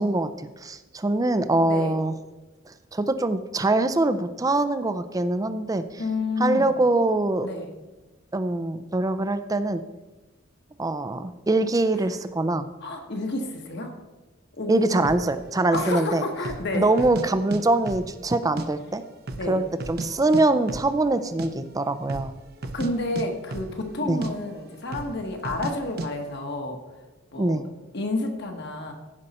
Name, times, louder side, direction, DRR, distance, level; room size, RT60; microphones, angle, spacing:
voice 1, 0.0-2.2 2.7-5.8 6.4-7.5 8.3-9.8 10.8-12.7 14.7-16.2 16.7-19.0 19.5-22.3 24.0-24.2 27.4-27.6, right 2 dB, 15° right, 12 dB, 0.4 m, -23 dB
voice 2, 1.6-2.0 6.0-6.7 7.4-7.7 12.8-13.9 14.6-15.1 15.7-16.9 19.3-19.6 22.7-26.8 27.3-27.6 27.9-28.9, left 2 dB, 55° left, 4 dB, 1.4 m, -30 dB
sound 1, 15.0-15.3 15.7-15.8 16.4-16.7 17.0-17.6 17.9-18.7 18.9-19.0 19.3-20.1 20.3-20.4 20.7-20.9 21.2-21.5 22.0-22.3 22.6-22.9 23.1-23.9 24.2-24.3 24.9-25.1 25.4-25.7 26.0-26.1, right 2 dB, 50° right, 0.7 m, -33 dB
15.0 x 5.4 x 4.2 m, 1.2 s
head